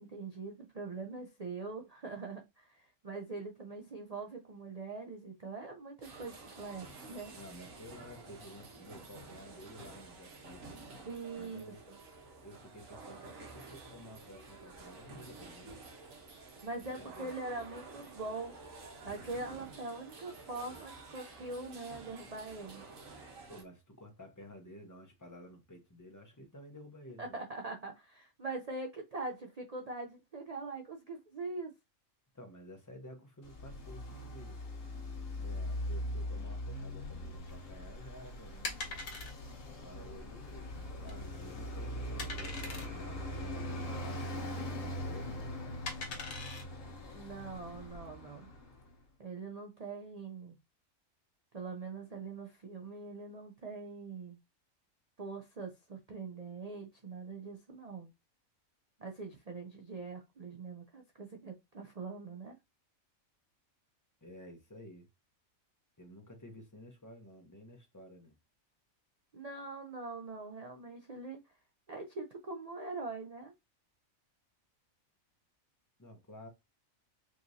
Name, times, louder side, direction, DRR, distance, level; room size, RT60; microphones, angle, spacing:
voice 1, 0.0-7.4 11.1-11.6 16.6-18.6 19.0-22.8 27.2-31.7 47.1-48.5 49.2-50.6 51.5-54.4 55.2-58.1 59.0-62.6 69.3-71.5 71.9-73.5, right 3 dB, 45° right, 0.5 m, -43 dB
sound 1, 6.0-23.6, right 3 dB, 70° right, 1.5 m, -51 dB
voice 2, 7.3-10.8 11.4-11.8 12.4-15.7 16.8-17.4 23.5-27.4 32.3-34.6 35.4-38.7 39.7-45.5 64.2-65.1 66.0-68.3 76.0-76.5, left 1 dB, 15° left, 0.9 m, -52 dB
Traffic noise roadway noise, 33.4-48.9, left 1 dB, 65° left, 1.5 m, -41 dB
sound 2, 37.4-48.0, left 3 dB, 85° left, 1.4 m, -45 dB
4.9 x 3.0 x 2.7 m
omnidirectional pair, 1.5 m